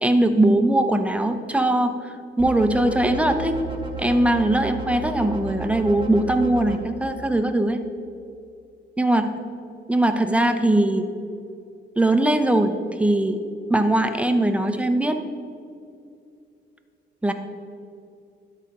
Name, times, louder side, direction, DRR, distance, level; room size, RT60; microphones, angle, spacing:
voice 1, 0.0-1.9 2.4-3.5 4.0-7.8 9.0-9.3 9.9-11.0 12.0-12.7 13.0-13.4 13.7-15.2 17.2-17.3, right 1 dB, 5° right, 7 dB, 0.7 m, -20 dB
sound 1, 2.4-6.8, right 2 dB, 25° right, 1.1 m, -33 dB
12.0 x 4.1 x 5.3 m, 2.5 s
cardioid pair, 90°, 20 cm